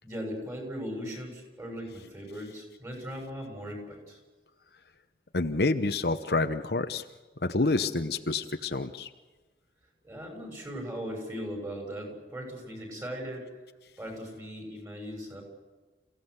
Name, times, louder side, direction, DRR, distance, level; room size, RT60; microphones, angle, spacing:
voice 1, 0.0-4.2 10.0-13.5 14.0-15.4, equal, 20° right, 2 dB, 6.2 m, -38 dB
voice 2, 5.3-7.0 7.4-9.1, left 3 dB, 60° left, 8 dB, 0.9 m, -28 dB
29.0 x 16.0 x 8.0 m, 1.3 s
head